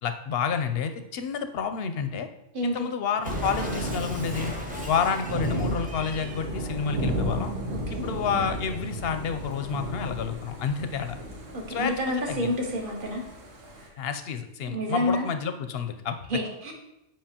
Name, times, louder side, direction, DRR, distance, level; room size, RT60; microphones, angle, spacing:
voice 1, 0.0-2.3 2.6-4.5 4.9-7.5 7.9-11.2 11.7-12.6 14.0-16.2, left 6 dB, 65° left, 8 dB, 0.7 m, -29 dB
voice 2, 2.5-2.9 7.9-8.1 11.5-13.2 14.7-15.3 16.3-16.7, left 1 dB, 45° right, 1 dB, 1.2 m, -28 dB
Cat, 3.2-6.5, left 1 dB, 10° right, 0.6 m, -37 dB
Thunder / Rain, 3.2-13.9, right 1 dB, 85° right, 1.4 m, -34 dB
7.6 x 5.1 x 2.8 m, 0.87 s
omnidirectional pair, 1.3 m